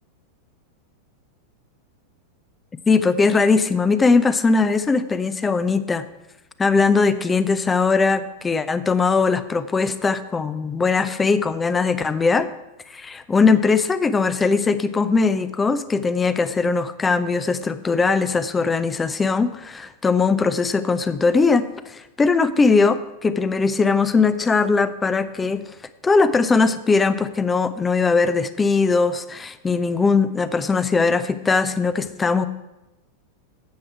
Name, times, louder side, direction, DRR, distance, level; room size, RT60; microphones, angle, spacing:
voice 1, 2.9-6.0 6.6-12.5 12.9-25.6 26.0-32.5, left 4 dB, 15° left, 13 dB, 0.5 m, -20 dB
9.5 x 7.7 x 4.6 m, 0.97 s
figure-of-eight pair, 90°, 0 cm